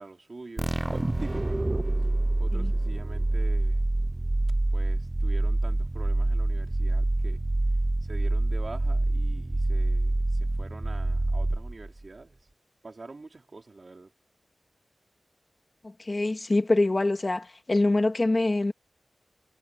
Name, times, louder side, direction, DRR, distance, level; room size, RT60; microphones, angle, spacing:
voice 1, 0.0-1.7 2.4-3.9 4.7-7.4 8.0-12.4 12.8-14.1, right 3 dB, 50° right, 3.6 m, -45 dB
sound 1, 0.6-12.0, right 2 dB, 25° right, 0.7 m, -26 dB
voice 2, 15.8-18.7, left 2 dB, 35° left, 2.2 m, -25 dB
wide cardioid pair, 75°, 0 cm